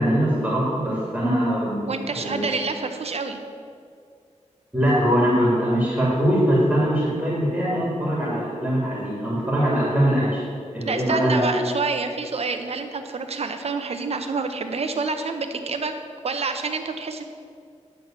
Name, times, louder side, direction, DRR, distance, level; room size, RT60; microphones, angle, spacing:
voice 1, 0.0-2.5 4.7-10.4 10.7-11.6, equal, 10° right, -7 dB, 2.3 m, -22 dB
voice 2, 1.9-3.4 10.8-15.9 16.2-17.2, right 4 dB, 55° right, 6 dB, 0.7 m, -28 dB
9.3 x 3.9 x 7.2 m, 2.3 s
wide cardioid pair, 100°, 13 cm